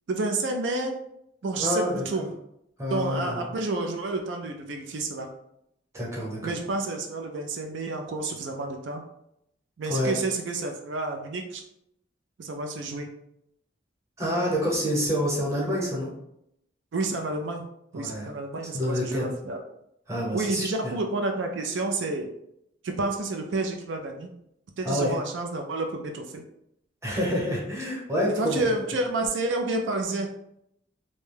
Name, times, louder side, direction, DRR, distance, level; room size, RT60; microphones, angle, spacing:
voice 1, 0.1-1.0 1.4-2.3 2.9-5.3 6.4-9.0 9.8-11.6 12.4-13.1 16.9-17.7 17.9-19.6 20.3-22.3 22.8-24.3 24.8-26.4 28.3-30.3, right 2 dB, 85° right, 3 dB, 0.4 m, -30 dB
voice 2, 1.6-2.0 2.8-3.4 5.9-6.5 9.9-10.1 14.2-16.1 18.0-18.3 18.7-19.3 20.1-20.9 24.8-25.1 27.0-28.6, equal, 15° right, -5 dB, 0.8 m, -27 dB
2.6 x 2.2 x 3.3 m, 0.78 s
head